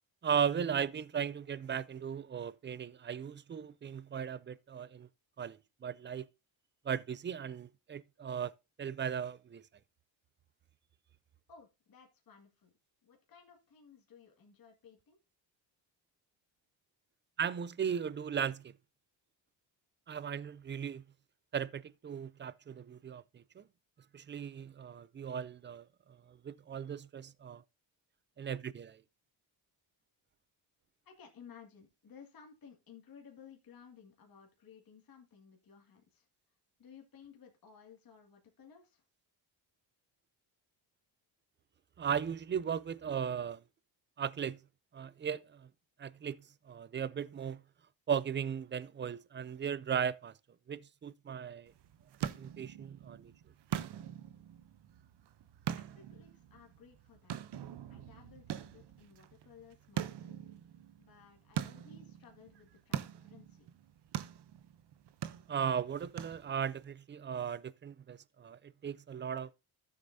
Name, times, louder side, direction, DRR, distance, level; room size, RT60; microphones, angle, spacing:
voice 1, 0.2-5.1 5.4-6.3 6.8-8.5 8.8-9.6 17.4-18.7 20.1-21.0 21.5-23.6 24.1-25.8 26.3-27.6 28.4-29.0 42.0-43.6 44.2-44.6 44.9-45.7 46.0-47.6 48.1-50.3 50.7-51.7 52.4-53.3 65.5-69.5, right 7 dB, 25° right, 0.4 m, -37 dB
voice 2, 11.5-12.7 13.0-15.2 31.0-36.3 36.8-39.1 55.8-57.4 57.9-60.5 61.0-63.7, left 7 dB, 50° left, 2.1 m, -57 dB
sound 1, 51.7-66.8, right 10 dB, 60° right, 0.8 m, -43 dB
13.0 x 7.3 x 2.7 m
cardioid pair, 100°, 46 cm